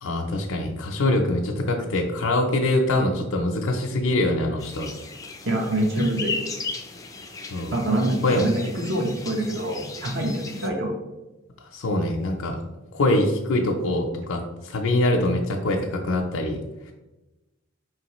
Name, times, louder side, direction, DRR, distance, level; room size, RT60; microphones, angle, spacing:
voice 1, 0.0-4.9 7.5-7.7 8.2-8.5 11.7-12.6 12.9-16.6 16.9-17.0, left 1 dB, 80° left, 1 dB, 0.5 m, -24 dB
sound 1, 4.6-10.7, left 3 dB, 15° left, 0.3 m, -36 dB
voice 2, 5.4-6.3 7.7-10.9, right 1 dB, 60° right, 0 dB, 0.9 m, -25 dB
4.8 x 3.2 x 3.0 m, 1.0 s
head